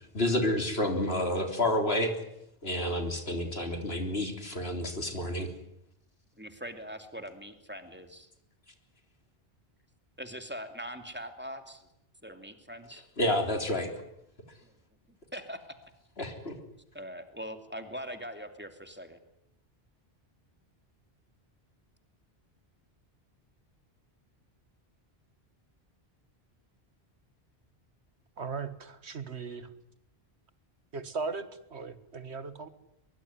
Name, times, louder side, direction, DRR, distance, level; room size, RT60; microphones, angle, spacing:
voice 1, 0.1-2.1 2.6-5.5 13.2-14.0 16.2-16.5, left 1 dB, 70° left, 5 dB, 3.9 m, -29 dB
voice 2, 6.4-8.3 10.2-11.9 12.2-13.0 14.6-14.7 15.1-15.6 16.9-19.2, equal, 10° right, 7 dB, 2.8 m, -42 dB
voice 3, 28.4-29.7 30.9-32.7, right 4 dB, 85° right, 12 dB, 1.9 m, -38 dB
23.0 x 23.0 x 9.7 m, 0.78 s
omnidirectional pair, 1.1 m